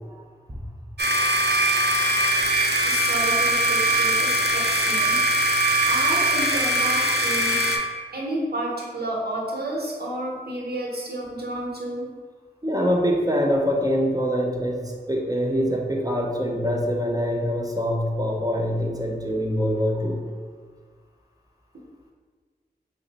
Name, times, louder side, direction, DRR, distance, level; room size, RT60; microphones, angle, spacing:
sound 1, 1.0-7.8, right 1 dB, 90° right, 0.4 m, -21 dB
voice 1, 2.9-5.2 5.9-7.6 8.1-12.1, right 1 dB, 70° right, -3 dB, 0.9 m, -31 dB
voice 2, 12.6-20.2, equal, 20° right, 0 dB, 0.6 m, -24 dB
4.3 x 2.0 x 3.9 m, 1.5 s
wide cardioid pair, 50°, 17 cm